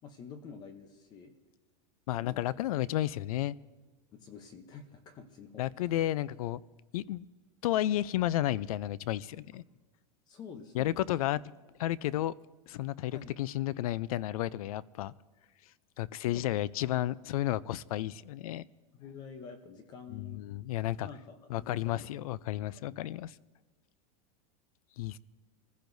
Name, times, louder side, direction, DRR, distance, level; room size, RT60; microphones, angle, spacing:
voice 1, 0.0-1.3 2.2-2.6 4.1-6.0 10.3-11.1 13.1-13.4 16.2-16.5 18.9-20.4 21.0-22.1 22.5-23.0, left 6 dB, 20° left, 8 dB, 0.8 m, -48 dB
voice 2, 2.1-3.6 5.6-6.6 6.9-7.3 7.6-9.6 10.7-11.4 11.8-12.3 12.7-15.1 16.0-18.6 20.1-21.1 21.5-23.3 25.0-25.2, left 14 dB, 85° left, 21 dB, 0.5 m, -32 dB
25.5 x 15.0 x 2.7 m, 1.3 s
supercardioid pair, 175°, 18 cm